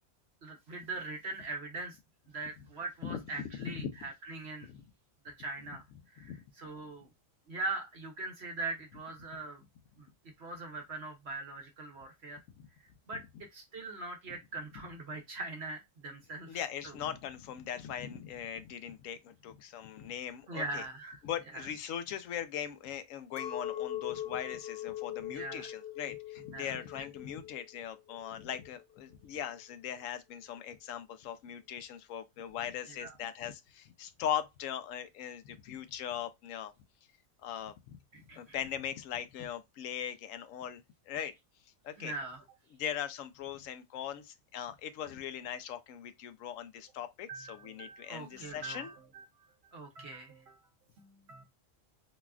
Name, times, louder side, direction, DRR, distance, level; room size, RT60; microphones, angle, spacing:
voice 1, 0.4-2.0 2.3-4.7 5.2-7.1 7.5-9.6 10.0-10.1 10.4-12.4 12.8-13.2 13.5-16.6 16.8-16.9 20.5-21.2 21.5-21.7 25.3-25.7 26.5-27.1 32.9-33.1 38.1-38.6 42.0-42.4 47.3-49.2 49.7-50.7 51.0-51.4, right 2 dB, 60° right, 1.0 m, -42 dB
voice 2, 3.0-3.9 4.7-4.8 6.2-6.4 16.5-20.8 21.2-36.7 37.4-38.0 38.3-41.3 41.8-42.1 42.7-48.9, left 9 dB, 85° left, 1.0 m, -40 dB
Chink clink, 23.4-28.8, left 11 dB, 60° left, 0.7 m, -41 dB
4.0 x 2.4 x 2.2 m
omnidirectional pair, 1.3 m